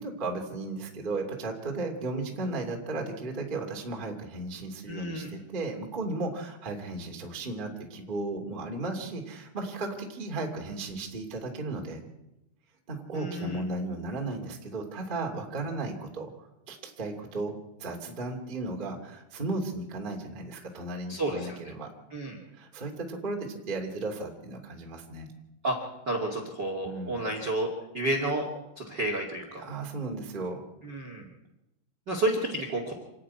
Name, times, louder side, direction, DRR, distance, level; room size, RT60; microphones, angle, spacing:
voice 1, 0.0-12.0 12.9-16.3 16.7-17.5 17.8-21.9 22.5-25.3 26.8-27.1 29.6-30.6, right 2 dB, 20° right, 1 dB, 1.4 m, -35 dB
voice 2, 4.9-5.3 13.1-13.6 21.1-21.7 22.1-22.4 25.6-25.7 26.0-27.7 27.9-28.4 28.8-29.7 30.8-31.3 32.1-32.9, right 1 dB, 40° right, 3 dB, 1.6 m, -30 dB
27.5 x 10.0 x 9.6 m, 0.91 s
omnidirectional pair, 5.8 m